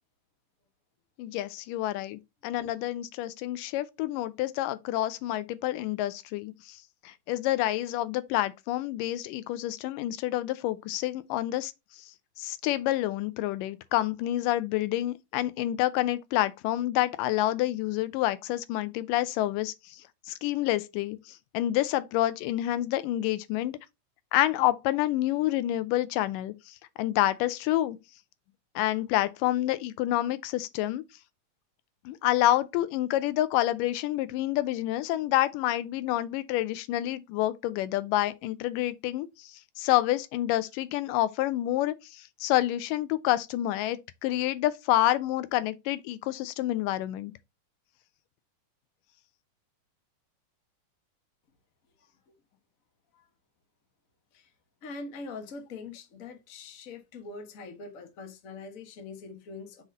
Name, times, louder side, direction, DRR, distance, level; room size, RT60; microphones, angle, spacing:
voice 1, 1.2-6.8 7.1-11.7 12.4-19.7 20.3-23.8 24.3-28.0 28.8-31.0 32.1-39.5 39.8-47.3, left 15 dB, 85° left, 2.2 m, -28 dB
voice 2, 54.8-59.8, left 4 dB, 60° left, 0.8 m, -43 dB
5.9 x 4.3 x 3.9 m
omnidirectional pair, 3.7 m